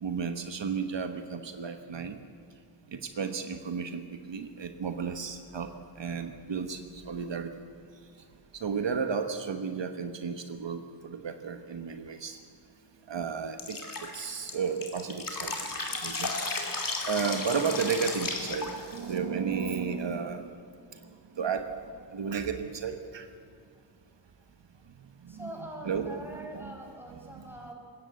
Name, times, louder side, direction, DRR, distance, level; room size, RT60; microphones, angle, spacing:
voice 1, 0.0-2.2 2.9-4.0 4.3-5.7 6.0-7.5 8.6-12.4 13.1-13.8 14.1-16.3 17.1-20.5 21.4-21.7 22.1-23.2 25.3-26.8, right 6 dB, 75° right, 7 dB, 1.2 m, -33 dB
Drip, 13.6-19.2, left 3 dB, 45° left, 2.8 m, -34 dB
voice 2, 25.3-27.8, equal, 5° right, 0 dB, 5.2 m, -43 dB
20.5 x 15.5 x 8.4 m, 2.5 s
wide cardioid pair, 105°, 44 cm